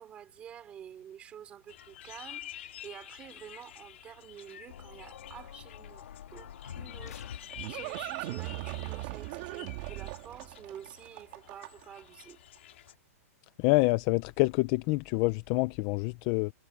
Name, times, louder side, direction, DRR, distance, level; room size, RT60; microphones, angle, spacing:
voice 1, 0.0-12.4, right 9 dB, 15° right, 3.1 m, -49 dB
sound 1, 1.7-12.9, left 13 dB, 50° left, 4.6 m, -49 dB
sound 2, 4.7-8.0, left 9 dB, 85° left, 1.7 m, -46 dB
Livestock farm animals working animals, 6.9-12.0, right 20 dB, 30° right, 2.0 m, -39 dB
voice 2, 13.6-16.5, left 23 dB, 20° left, 0.4 m, -27 dB
hypercardioid pair, 175°, 8 cm